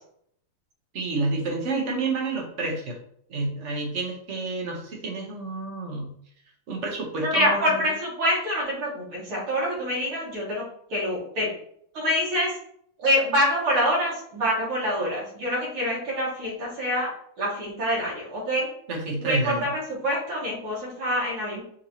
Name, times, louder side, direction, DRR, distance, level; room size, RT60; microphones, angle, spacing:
voice 1, 0.9-3.0 3.3-6.1 6.7-7.8 18.9-19.6, right 2 dB, 50° right, 0 dB, 0.9 m, -29 dB
voice 2, 7.2-10.6 10.9-11.5 11.9-12.5 13.0-17.1 17.4-18.7 19.2-21.6, equal, 85° right, -5 dB, 2.4 m, -26 dB
5.1 x 3.1 x 2.8 m, 0.65 s
omnidirectional pair, 2.3 m